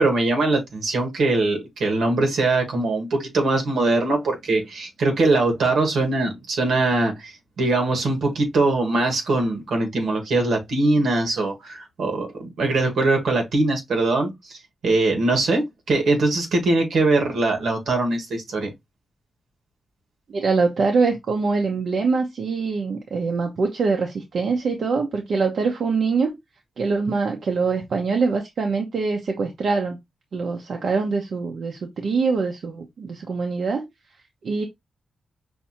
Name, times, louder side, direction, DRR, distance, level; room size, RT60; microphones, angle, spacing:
voice 1, 0.0-18.7, right 2 dB, 90° right, 1.5 m, -22 dB
voice 2, 20.3-26.4 26.8-30.0 30.3-33.9 34.4-34.7, right 4 dB, 55° right, 0.7 m, -24 dB
5.7 x 2.7 x 2.8 m
wide cardioid pair, 180°, 0 cm